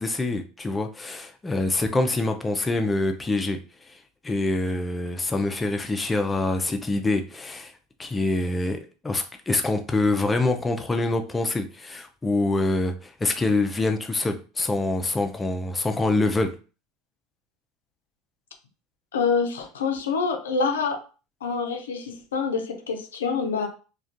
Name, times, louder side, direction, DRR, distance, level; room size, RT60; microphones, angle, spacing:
voice 1, 0.0-3.6 3.9-4.0 4.2-7.7 8.0-8.8 9.0-16.5, left 2 dB, 15° left, 5 dB, 0.4 m, -25 dB
voice 2, 19.1-21.0 21.4-23.7, left 5 dB, 90° left, 5 dB, 0.4 m, -26 dB
2.3 x 2.2 x 2.5 m, 0.35 s
hypercardioid pair, 85°, 0 cm